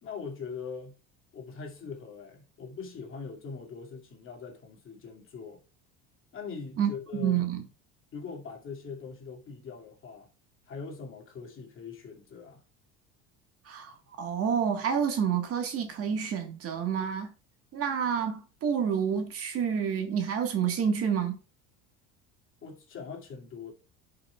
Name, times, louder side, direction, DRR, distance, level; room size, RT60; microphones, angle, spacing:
voice 1, 0.0-0.9 1.3-5.6 6.3-7.4 8.1-10.3 10.7-12.6 22.6-23.7, left 5 dB, 40° left, 2.5 m, -42 dB
voice 2, 6.8-7.6 13.7-17.3 17.7-21.4, right 7 dB, 45° right, 1.7 m, -29 dB
11.0 x 5.7 x 2.4 m
supercardioid pair, 120°, 33 cm